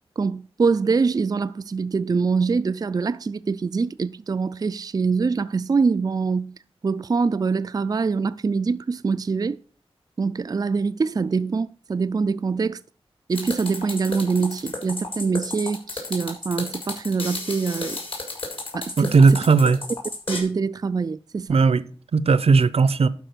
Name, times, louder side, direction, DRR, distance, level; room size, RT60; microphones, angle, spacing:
voice 1, 0.2-6.6 6.8-9.6 10.2-12.8 13.3-18.0 18.7-19.5 20.3-21.6, right 4 dB, 40° right, 0.3 m, -24 dB
sound 1, 13.3-20.4, left 2 dB, 60° left, 3.8 m, -33 dB
voice 2, 19.0-19.8 21.5-21.8 22.1-23.1, right 4 dB, 80° right, 0.6 m, -16 dB
11.5 x 5.0 x 6.0 m
wide cardioid pair, 80°, 10 cm